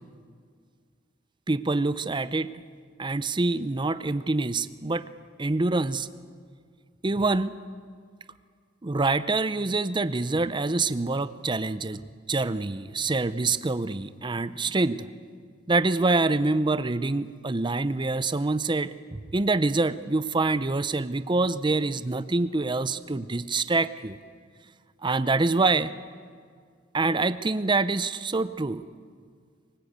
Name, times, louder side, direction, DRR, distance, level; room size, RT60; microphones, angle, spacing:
voice 1, 1.5-2.5 3.0-5.0 5.4-6.1 7.0-7.6 8.8-12.0 12.3-15.1 15.7-24.2 25.0-25.9 26.9-28.9, right 3 dB, 25° right, 14 dB, 0.6 m, -26 dB
23.5 x 20.0 x 8.1 m, 2.1 s
head